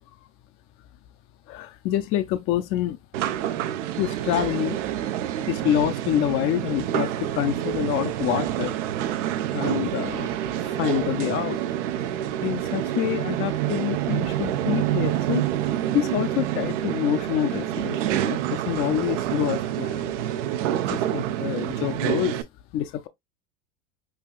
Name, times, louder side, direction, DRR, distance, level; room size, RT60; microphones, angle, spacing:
voice 1, 1.5-3.0 4.0-4.8 5.5-8.7 9.5-11.6 12.4-15.4 15.9-20.1 20.9-22.4 22.7-23.1, left 12 dB, 40° left, 0.4 m, -27 dB
sound 1, 3.1-22.4, right 12 dB, 85° right, 0.6 m, -27 dB
5.5 x 2.4 x 2.2 m
supercardioid pair, 120°, 35 cm